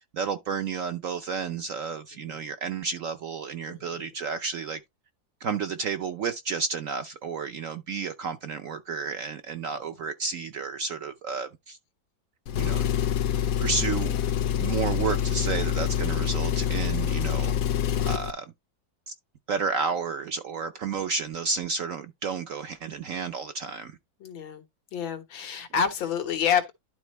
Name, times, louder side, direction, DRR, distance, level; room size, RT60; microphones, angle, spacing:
voice 1, 0.1-4.8 5.4-11.8 12.6-12.9 13.6-14.1 14.6-17.5 18.0-18.4 19.1-19.2 19.5-23.9, right 5 dB, 65° right, 0.8 m, -31 dB
voice 2, 3.6-4.1 9.7-9.8 24.2-24.6 24.9-26.7, left 7 dB, 90° left, 2.1 m, -29 dB
Engine, 12.5-18.3, left 9 dB, 60° left, 0.9 m, -26 dB
11.5 x 4.2 x 3.0 m
omnidirectional pair, 2.1 m